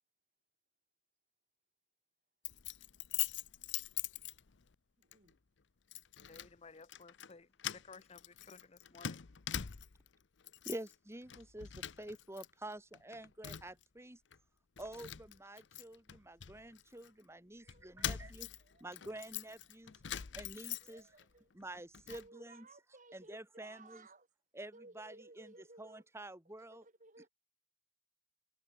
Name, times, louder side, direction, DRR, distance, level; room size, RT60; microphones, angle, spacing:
Keys jangling, 2.4-4.7 5.1-5.3 5.9-6.5 6.8-7.3 7.6-10.1 10.4-10.9 11.3-12.5 12.7-13.8 14.3-14.4 14.8-17.1 17.7-21.2 21.6-22.3, left 11 dB, 80° left, 0.8 m, -43 dB
voice 1, 5.0-5.4 17.6-18.3 18.6-19.0 20.0-20.5 20.8-21.5 22.1-24.3 24.7-26.1 26.5-27.3, right 2 dB, 45° right, 5.1 m, -59 dB
voice 2, 6.3-9.2, left 4 dB, 35° left, 1.0 m, -56 dB
voice 3, 10.6-14.2 14.8-18.5 18.8-21.0 21.5-22.7 23.1-24.0 24.5-26.8, right 1 dB, 15° right, 2.8 m, -48 dB
head